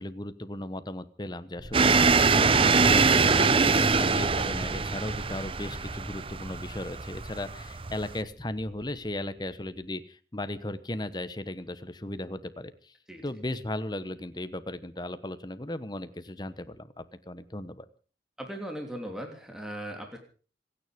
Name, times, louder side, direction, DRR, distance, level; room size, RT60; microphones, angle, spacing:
voice 1, 0.0-13.0 13.2-17.9, left 1 dB, 25° left, 13 dB, 1.1 m, -36 dB
sound 1, 1.6-9.8, equal, 55° right, 5.4 m, -43 dB
sound 2, 1.7-8.2, right 4 dB, 30° right, 0.7 m, -23 dB
voice 2, 18.4-20.2, equal, 5° right, 2 dB, 3.1 m, -38 dB
27.0 x 9.7 x 5.2 m, 0.40 s
head